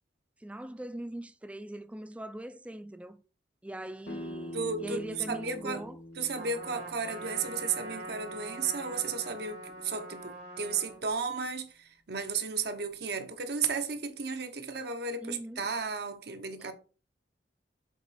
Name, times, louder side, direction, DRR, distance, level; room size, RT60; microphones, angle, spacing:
voice 1, 0.4-3.2 3.6-6.0 15.2-15.7 16.6-16.7, right 1 dB, 5° right, 0.4 m, -41 dB
sound 1, 4.0-9.6, left 1 dB, 75° left, 1.7 m, -46 dB
voice 2, 4.5-5.8 6.2-16.7, right 5 dB, 65° right, 1.0 m, -34 dB
Trumpet, 6.3-11.0, right 1 dB, 80° right, 2.7 m, -43 dB
7.5 x 4.0 x 4.2 m
head